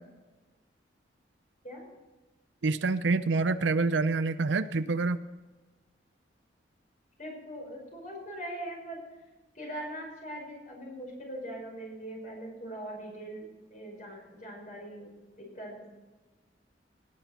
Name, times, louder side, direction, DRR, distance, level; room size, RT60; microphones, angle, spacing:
voice 1, 2.6-5.2, right 3 dB, 80° right, 12 dB, 0.6 m, -27 dB
voice 2, 7.2-9.0 9.5-15.9, right 1 dB, 40° left, -1 dB, 5.2 m, -41 dB
18.0 x 9.4 x 4.3 m, 1.2 s
head